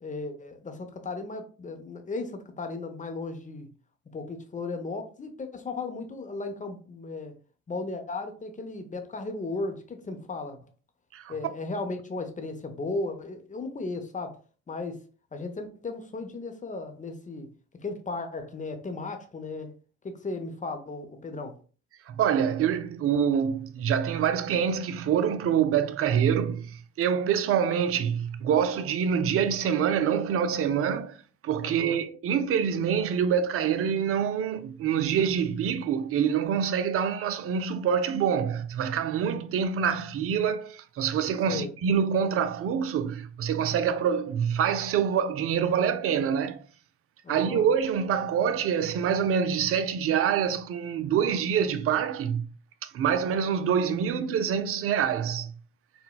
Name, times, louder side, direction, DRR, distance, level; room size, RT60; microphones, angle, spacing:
voice 1, 0.0-3.7 4.1-7.3 7.7-10.6 11.3-14.4 14.7-15.0 15.3-17.5 17.8-19.7 20.0-21.5 31.6-32.0 41.5-41.7 47.2-47.7, left 3 dB, 20° left, 0.7 m, -35 dB
voice 2, 22.1-31.2 31.4-46.6 47.3-52.4 52.8-55.5, right 8 dB, 35° right, 0.4 m, -26 dB
3.9 x 2.1 x 2.2 m
hypercardioid pair, 60°, 41 cm